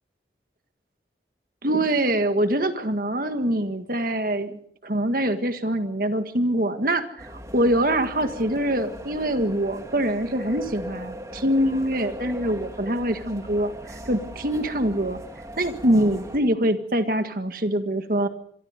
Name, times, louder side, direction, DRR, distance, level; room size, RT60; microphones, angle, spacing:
voice 1, 1.6-15.2 15.6-18.3, right 1 dB, 50° right, 8 dB, 1.7 m, -24 dB
sound 1, 7.2-16.4, equal, 20° right, 2.6 m, -39 dB
27.0 x 23.0 x 5.1 m, 0.62 s
head